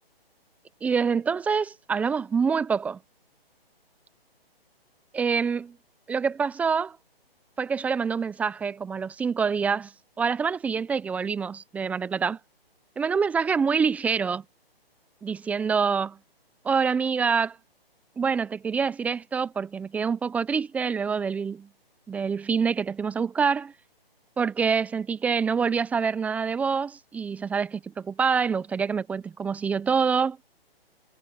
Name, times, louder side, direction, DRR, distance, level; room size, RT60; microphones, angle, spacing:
voice 1, 0.8-3.0 5.1-5.7 6.1-7.0 7.6-9.9 10.2-12.4 13.0-14.4 15.2-16.2 16.6-17.6 18.2-21.7 22.1-23.7 24.4-30.4, right 6 dB, 5° right, 0.7 m, -26 dB
figure-of-eight pair, 145°, 31 cm